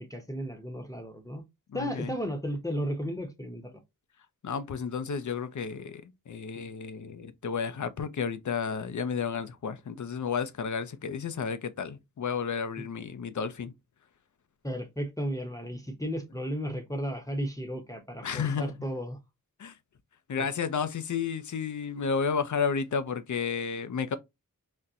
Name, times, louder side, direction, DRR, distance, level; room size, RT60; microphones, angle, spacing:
voice 1, 0.0-1.4 1.7-3.7 14.6-19.2 20.4-20.5, equal, 10° left, 0.9 m, -34 dB
voice 2, 1.7-2.1 4.4-13.7 18.2-18.7 19.6-19.7 20.3-24.2, left 6 dB, 55° left, 0.6 m, -32 dB
4.2 x 2.1 x 2.4 m
cardioid pair, 50°, 35 cm